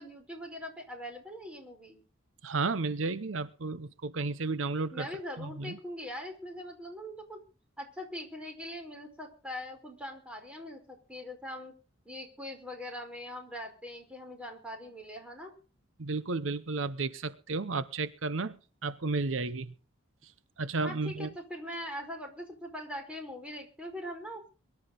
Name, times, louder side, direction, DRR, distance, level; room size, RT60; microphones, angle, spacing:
voice 1, 0.0-2.0 4.9-7.4 7.8-11.7 12.0-15.5 20.8-24.5, left 1 dB, 5° right, 3 dB, 4.9 m, -42 dB
voice 2, 2.4-5.0 5.4-5.8 16.0-18.6 18.8-19.7 20.6-21.3, right 3 dB, 75° right, 14 dB, 0.8 m, -32 dB
23.0 x 12.0 x 3.9 m, 0.35 s
head